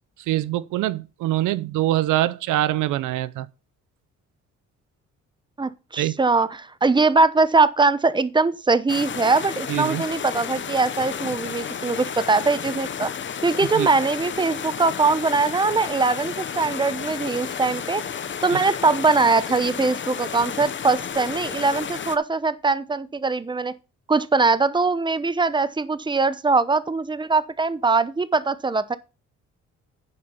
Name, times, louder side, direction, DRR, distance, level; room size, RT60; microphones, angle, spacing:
voice 1, 0.3-3.5 6.0-6.2 9.7-10.0 13.7-13.9 18.5-18.6, right 14 dB, 85° right, 0.6 m, -24 dB
voice 2, 5.6-13.1 13.4-18.0 18.4-23.7 24.1-29.0, right 3 dB, 15° right, 0.8 m, -21 dB
sound 1, 8.9-22.2, left 7 dB, 40° left, 0.9 m, -32 dB
11.0 x 5.0 x 5.6 m
cardioid pair, 90°, 30 cm